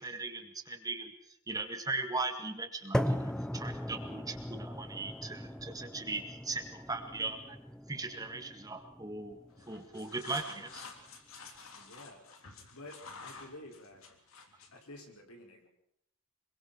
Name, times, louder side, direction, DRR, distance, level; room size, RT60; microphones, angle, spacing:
voice 1, 0.0-7.6 7.9-9.4 9.7-10.9, right 3 dB, 15° right, 6 dB, 1.9 m, -39 dB
sound 1, 2.9-11.0, equal, 5° left, 0.7 m, -38 dB
sound 2, 9.5-14.8, left 4 dB, 70° left, 3.4 m, -50 dB
voice 2, 11.7-12.2 12.7-14.0 14.7-15.7, left 1 dB, 90° left, 2 dB, 5.9 m, -50 dB
26.0 x 23.0 x 4.5 m, 0.74 s
head